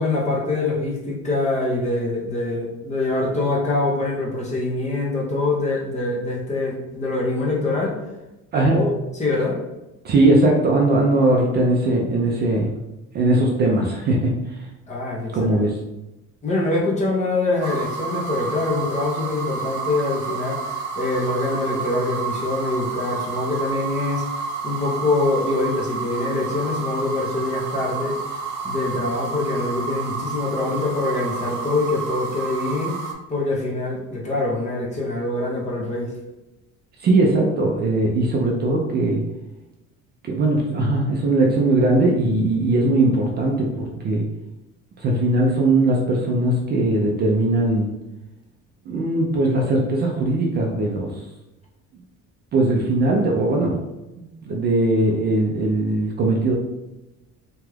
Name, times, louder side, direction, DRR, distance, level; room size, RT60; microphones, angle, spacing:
voice 1, 0.0-8.0 8.7-8.9 9.2-9.6 14.9-15.6 16.4-20.6 21.0-24.2 24.6-28.2 28.6-33.0 33.3-36.1, left 2 dB, 25° left, -3 dB, 0.6 m, -24 dB
voice 2, 10.0-12.7 13.1-14.7 15.3-15.8 37.0-39.2 40.2-44.2 45.0-47.9 48.9-51.2 52.5-53.8 54.2-56.5, right 2 dB, 35° right, 0 dB, 0.4 m, -20 dB
sound 1, 17.6-33.1, right 4 dB, 70° right, 0.6 m, -30 dB
2.9 x 2.3 x 3.2 m, 0.99 s
cardioid pair, 170°, 30 cm